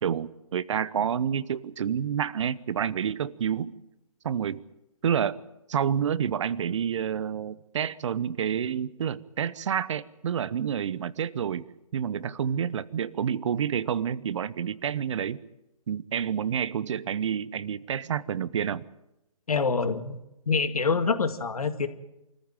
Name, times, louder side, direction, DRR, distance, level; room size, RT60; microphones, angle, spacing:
voice 1, 0.0-3.7 4.2-4.6 5.0-5.4 5.7-11.7 11.9-15.4 15.9-18.8, right 8 dB, 55° right, 19 dB, 0.9 m, -29 dB
voice 2, 19.5-20.2 20.5-21.9, left 4 dB, 75° left, 10 dB, 2.0 m, -26 dB
24.5 x 14.5 x 9.0 m, 0.92 s
hypercardioid pair, 145°, 19 cm